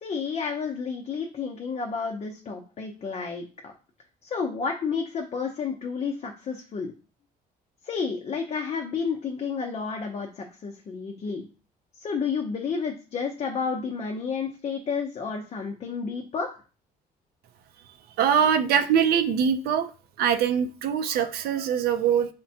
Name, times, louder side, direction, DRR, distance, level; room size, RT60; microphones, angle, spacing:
voice 1, 0.0-3.7 4.2-6.9 7.8-11.5 12.0-16.5, left 5 dB, 40° left, 2 dB, 0.6 m, -31 dB
voice 2, 18.2-19.9 20.2-22.3, right 8 dB, 70° right, 9 dB, 0.5 m, -23 dB
5.0 x 2.1 x 2.7 m, 0.36 s
cardioid pair, 110°, 17 cm